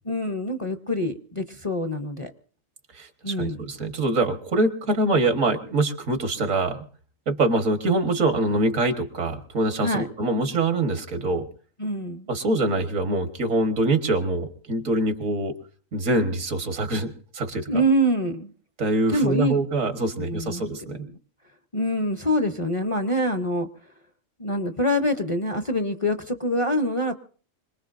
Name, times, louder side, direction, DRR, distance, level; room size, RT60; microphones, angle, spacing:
voice 1, 0.0-2.3 3.2-3.6 9.8-10.1 11.8-12.3 17.7-18.5 19.1-19.6 20.2-20.6 20.9-21.0 21.7-23.7 24.4-27.1, equal, 30° left, 6 dB, 0.6 m, -25 dB
voice 2, 2.9-6.8 7.3-11.4 12.3-15.5 15.9-17.8 18.8-21.1, right 2 dB, 85° right, 6 dB, 1.8 m, -24 dB
25.5 x 19.5 x 2.5 m, 0.43 s
omnidirectional pair, 1.3 m